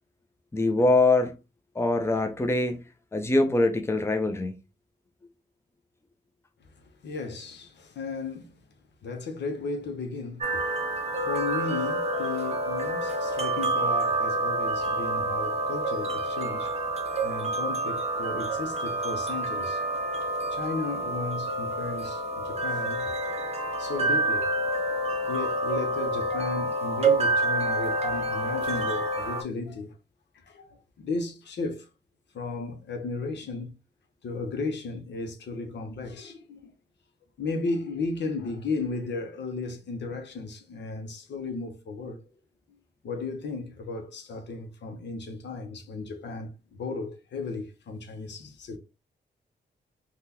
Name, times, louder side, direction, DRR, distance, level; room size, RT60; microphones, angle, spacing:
voice 1, 0.5-1.4 1.7-2.8 3.1-4.5, left 2 dB, 15° left, 0.6 m, -23 dB
voice 2, 7.0-8.5 9.0-10.5 11.2-16.9 17.2-19.8 20.5-23.4 23.8-24.5 25.3-29.9 30.5-31.9 32.3-33.7 34.2-36.7 37.4-42.2 43.0-48.8, left 3 dB, 70° left, 0.8 m, -35 dB
sound 1, 10.4-29.4, right 2 dB, 35° right, 0.7 m, -28 dB
3.6 x 2.3 x 2.8 m
cardioid pair, 55°, 19 cm